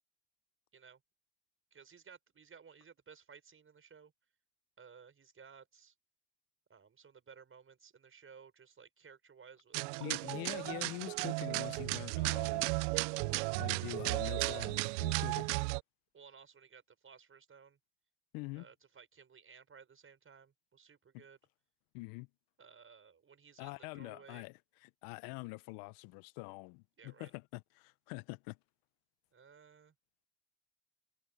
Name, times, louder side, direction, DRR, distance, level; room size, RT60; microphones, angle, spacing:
voice 1, 1.7-4.1 4.8-5.9 6.7-10.2 16.1-17.8 18.5-21.4 22.6-24.5 27.0-27.3 29.3-29.9, right 6 dB, 35° right, 6.4 m, -58 dB
sound 1, 9.7-15.8, right 27 dB, 75° right, 0.7 m, -34 dB
voice 2, 10.0-12.7 13.2-15.5 18.3-18.7 21.1-21.2 21.9-22.3 23.6-28.6, left 25 dB, 70° left, 1.3 m, -45 dB
hypercardioid pair, 65°, 36 cm